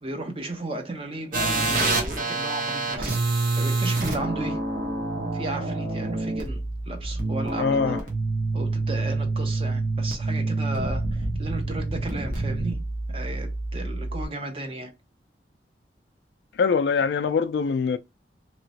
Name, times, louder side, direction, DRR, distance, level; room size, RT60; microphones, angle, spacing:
voice 1, 0.0-3.2 3.6-4.6 5.3-8.0 8.5-12.8 13.1-14.9, right 2 dB, 30° right, 0.6 m, -34 dB
sound 1, 1.3-14.3, right 2 dB, 50° right, 1.0 m, -27 dB
voice 2, 7.6-8.0 16.5-18.0, left 5 dB, 75° left, 0.3 m, -23 dB
3.0 x 2.9 x 2.7 m
head